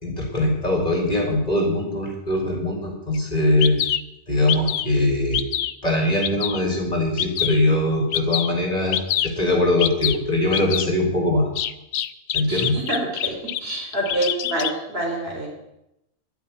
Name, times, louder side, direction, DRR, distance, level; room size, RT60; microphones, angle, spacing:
voice 1, 0.0-3.8 4.3-5.4 5.8-9.0 9.2-11.5 12.3-12.8, left 1 dB, 30° left, 0 dB, 4.3 m, -21 dB
Bird vocalization bird call bird song, 3.1-3.2 3.6-4.0 4.5-4.9 5.3-5.7 6.2-6.6 7.2-7.6 8.1-8.5 8.9-9.3 9.8-10.2 10.5-10.9 11.6-13.6 13.9-14.7, left 10 dB, 85° left, 1.1 m, -25 dB
voice 2, 12.5-13.3 13.6-15.5, right 1 dB, 50° right, -1 dB, 3.7 m, -26 dB
11.0 x 8.4 x 8.9 m, 0.85 s
omnidirectional pair, 1.4 m